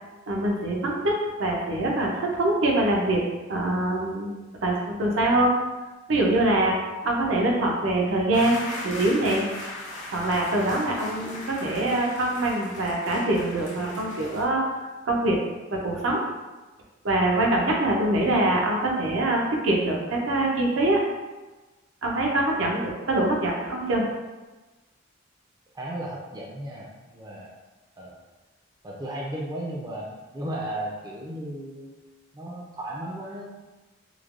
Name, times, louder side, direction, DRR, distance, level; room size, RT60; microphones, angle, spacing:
voice 1, 0.3-3.2 3.5-4.3 4.6-5.5 6.1-6.8 7.0-9.5 10.1-14.6 15.1-15.4 15.7-16.2 17.0-21.0 22.0-24.0, right 1 dB, 75° right, -1 dB, 0.6 m, -24 dB
sound 1, 8.3-14.4, left 2 dB, 40° left, 0.6 m, -38 dB
voice 2, 25.7-27.5 28.0-28.2 28.8-31.9 32.3-33.5, right 1 dB, 20° right, -3 dB, 0.3 m, -35 dB
3.1 x 2.1 x 2.4 m, 1.2 s
head